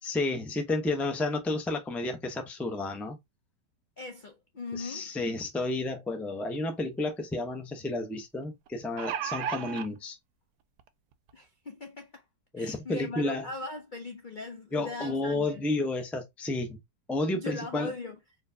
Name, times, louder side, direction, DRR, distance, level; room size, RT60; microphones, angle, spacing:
voice 1, 0.0-3.2 4.7-10.2 12.5-13.5 14.7-16.8 17.1-17.9, left 2 dB, ahead, 0.5 m, -31 dB
voice 2, 4.0-5.1 11.3-12.2 12.6-15.6 17.3-18.2, left 3 dB, 50° left, 0.5 m, -39 dB
sound 1, 6.6-6.7 7.0-7.1 8.7-9.9 10.8-10.9 11.3-11.4, right 9 dB, 75° right, 1.1 m, -33 dB
4.4 x 3.2 x 2.7 m
omnidirectional pair, 1.9 m